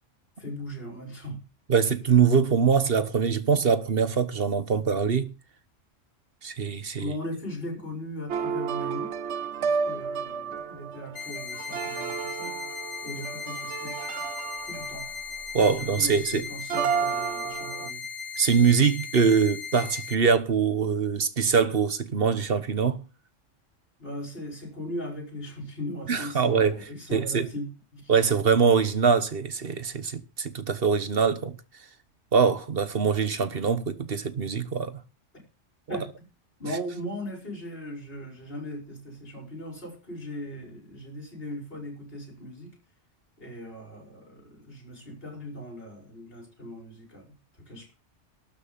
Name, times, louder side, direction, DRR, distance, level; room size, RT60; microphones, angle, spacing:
voice 1, 0.4-1.4 7.0-9.1 9.6-12.6 13.0-14.0 14.6-15.1 15.8-18.0 24.0-28.1 35.9-36.3 36.6-42.8 43.4-47.9, equal, 50° left, 5.3 m, -38 dB
voice 2, 1.7-5.3 6.4-7.1 15.5-16.4 18.4-23.0 26.1-26.8 27.1-27.5 28.1-31.6 32.3-35.0 35.9-36.0, right 6 dB, 50° right, 1.3 m, -23 dB
sound 1, 8.3-16.1 16.7-17.9, right 6 dB, 65° right, 1.0 m, -31 dB
sound 2, 11.1-20.1, left 6 dB, 70° left, 1.6 m, -37 dB
12.5 x 6.2 x 8.5 m
omnidirectional pair, 1.3 m